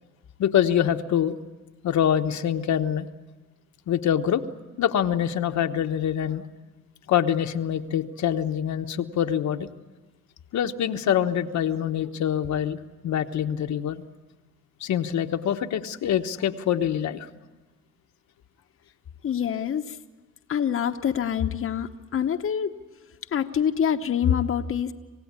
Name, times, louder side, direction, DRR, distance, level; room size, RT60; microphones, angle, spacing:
voice 1, 0.4-1.4 1.8-3.1 3.9-4.4 4.8-6.4 7.1-9.7 10.5-14.0 14.8-17.3, left 9 dB, 70° left, 6 dB, 1.1 m, -25 dB
voice 2, 19.2-20.0 20.5-22.7 23.3-24.9, left 8 dB, 45° left, 5 dB, 1.0 m, -25 dB
27.5 x 16.5 x 9.6 m, 1.2 s
cardioid pair, 90°, 30 cm